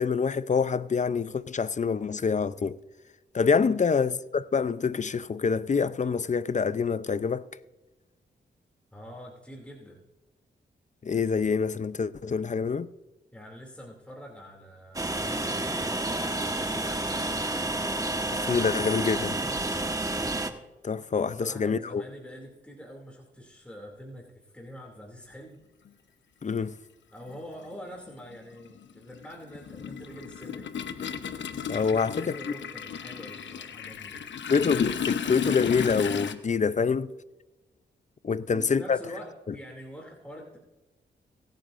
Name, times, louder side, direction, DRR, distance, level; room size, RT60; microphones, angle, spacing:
voice 1, 0.0-2.8 3.3-7.4 11.0-12.9 18.3-19.4 20.8-22.0 26.4-26.7 31.7-32.4 34.5-37.1 38.2-39.0, left 5 dB, 40° left, 0.6 m, -26 dB
voice 2, 8.9-10.0 13.3-15.9 16.4-17.5 19.4-19.9 21.1-25.6 27.1-30.7 31.9-34.2 38.2-40.6, equal, 5° left, 2.7 m, -45 dB
Train, 14.9-20.5, right 2 dB, 20° right, 1.4 m, -30 dB
Toilet flush, 25.9-26.0 27.2-27.4 27.7-36.3, left 7 dB, 75° left, 1.0 m, -34 dB
23.0 x 9.1 x 2.6 m
cardioid pair, 50°, 19 cm